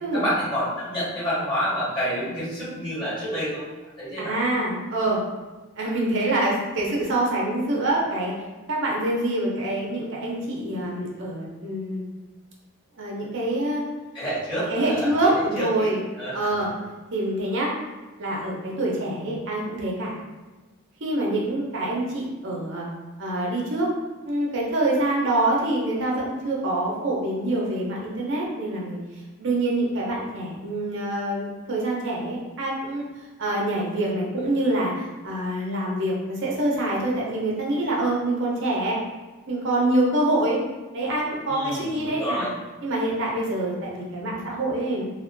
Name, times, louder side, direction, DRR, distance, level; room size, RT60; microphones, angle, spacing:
voice 1, 0.1-3.6 4.0-4.3 14.1-16.5 41.5-42.5, equal, 20° left, -11 dB, 1.3 m, -29 dB
voice 2, 4.2-5.2 5.8-8.3 8.7-12.0 13.0-13.8 14.7-16.0 16.3-16.7 17.1-17.7 18.2-20.2 21.0-22.9 23.2-23.9 24.2-29.0 29.4-39.0 39.5-40.6 40.9-42.5 42.8-45.0, right 1 dB, 55° right, -3 dB, 0.6 m, -25 dB
2.6 x 2.1 x 2.5 m, 1.2 s
head